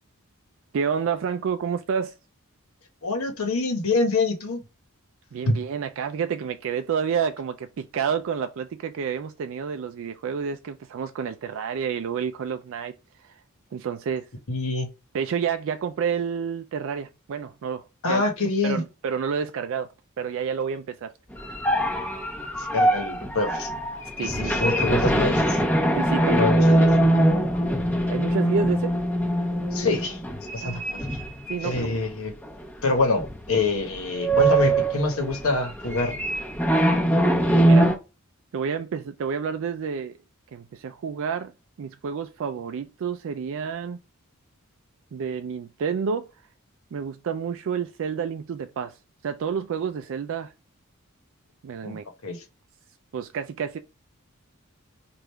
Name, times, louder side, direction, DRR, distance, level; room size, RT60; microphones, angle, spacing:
voice 1, 0.7-2.1 5.3-12.9 13.2-13.4 13.7-14.3 15.1-18.2 18.6-21.1 24.2-24.6 26.0-26.8 28.1-28.9 30.6-30.8 31.5-31.9 37.6-37.9 38.5-40.1 40.5-41.5 41.8-44.0 45.1-46.3 46.9-50.5 51.6-52.0 53.1-53.8, right 6 dB, 60° right, 0.3 m, -29 dB
voice 2, 3.0-4.6 5.5-5.6 14.5-14.9 18.0-18.8 22.6-23.7 24.2-25.6 26.3-26.9 29.7-30.2 30.5-31.1 31.6-32.3 32.8-36.2 51.8-52.0 52.2-52.4, left 3 dB, 70° left, 1.1 m, -25 dB
sound 1, 21.3-32.0 32.5-32.6 33.2-33.6 33.8-37.9, right 1 dB, 10° left, 0.9 m, -22 dB
3.4 x 2.5 x 4.3 m
head